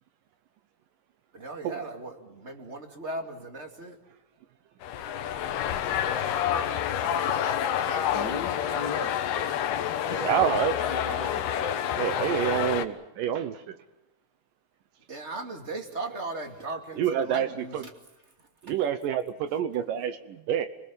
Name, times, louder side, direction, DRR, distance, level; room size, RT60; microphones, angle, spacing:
voice 1, 1.3-4.0 15.1-17.9, right 2 dB, 20° right, 5 dB, 2.0 m, -37 dB
sound 1, 4.8-12.8, left 9 dB, 80° left, 3.3 m, -28 dB
voice 2, 8.1-9.1 10.1-11.5, left 4 dB, 55° left, 5 dB, 1.1 m, -36 dB
voice 3, 10.2-10.7 12.0-13.8 16.9-17.8 18.6-20.7, right 9 dB, 70° right, 11 dB, 2.3 m, -28 dB
27.5 x 20.0 x 7.2 m, 1.0 s
omnidirectional pair, 4.5 m